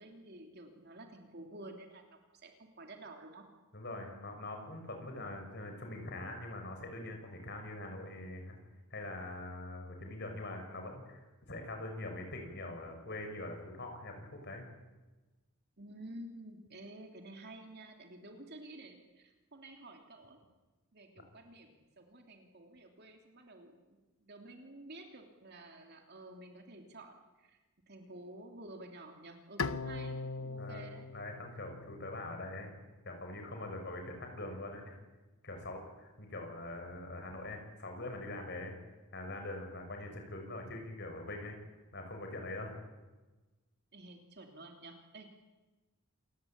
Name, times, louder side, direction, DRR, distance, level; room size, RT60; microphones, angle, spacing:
voice 1, 0.0-2.0 2.3-3.5 15.8-20.4 20.9-27.6 27.9-31.1 43.9-45.3, right 1 dB, 50° right, 3 dB, 3.1 m, -51 dB
voice 2, 3.7-8.6 8.9-14.7 30.6-30.8 31.1-32.7 33.1-35.0 35.4-38.8 39.1-41.6 41.9-42.8, left 2 dB, 50° left, 4 dB, 6.1 m, -43 dB
Bowed string instrument, 29.6-32.8, left 4 dB, 65° left, 0.8 m, -40 dB
28.0 x 20.0 x 8.9 m, 1.2 s
head